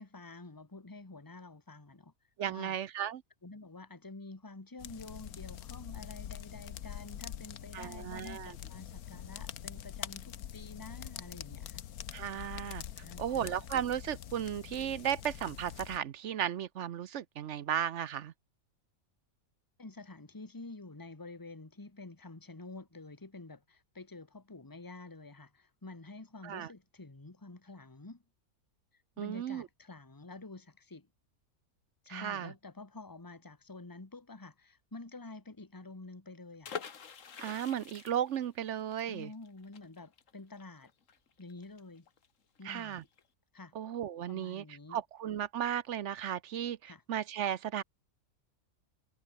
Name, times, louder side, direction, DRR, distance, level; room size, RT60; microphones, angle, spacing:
voice 1, 0.0-2.1 2.5-2.7 3.4-11.8 13.0-13.5 19.8-28.2 28.9-31.1 32.0-36.8 39.1-40.9 41.4-42.1 42.6-43.1 43.5-43.7 44.3-45.0 46.9-47.0, left 3 dB, 15° left, 1.6 m, -49 dB
voice 2, 2.4-3.2 7.7-8.5 12.1-12.8 13.2-18.3 26.4-26.7 29.2-29.7 32.1-32.5 37.4-39.3 42.6-43.0 43.7-44.6 44.9-47.8, right 10 dB, 60° right, 0.9 m, -35 dB
sound 1, 4.8-16.0, left 10 dB, 85° left, 1.4 m, -45 dB
sound 2, 36.6-42.3 42.6-42.7 42.9-43.2, left 7 dB, 60° left, 1.7 m, -46 dB
omnidirectional pair, 1.5 m